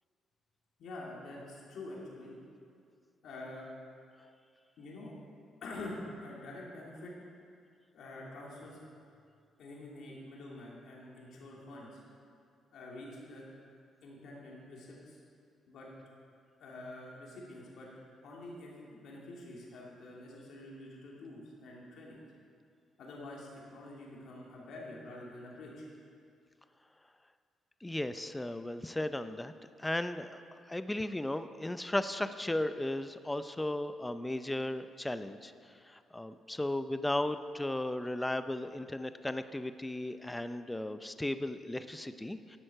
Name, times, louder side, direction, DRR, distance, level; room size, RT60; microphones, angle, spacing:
voice 1, 0.8-2.3 3.2-3.7 4.8-5.1 5.6-6.0 6.2-7.1 7.9-8.8 9.6-12.0 12.7-13.4 14.0-15.2 15.7-15.9 16.6-17.9 18.2-22.2 23.0-25.9, left 2 dB, 70° left, -4 dB, 2.9 m, -47 dB
voice 2, 27.8-29.5 29.8-35.5 35.9-42.6, left 1 dB, 10° left, 11 dB, 0.5 m, -35 dB
11.5 x 8.7 x 6.7 m, 2.3 s
cardioid pair, 90°, 0 cm